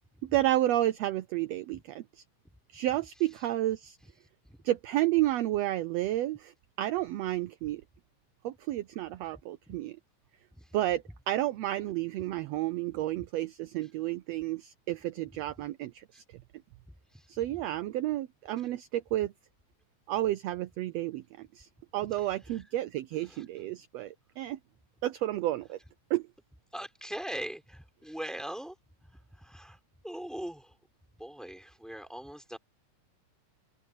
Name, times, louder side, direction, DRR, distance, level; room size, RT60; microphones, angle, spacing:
voice 1, 0.2-2.2 2.7-4.0 4.6-7.8 8.4-10.0 10.7-16.2 17.3-19.3 20.1-24.6 25.0-25.8 26.1-26.3, right 15 dB, 75° right, 1.6 m, -31 dB
voice 2, 16.9-17.6 22.2-22.6 23.2-23.4 26.7-28.7 29.1-29.8 30.0-30.8 31.2-32.6, right 1 dB, ahead, 5.0 m, -42 dB
open air
omnidirectional pair, 3.5 m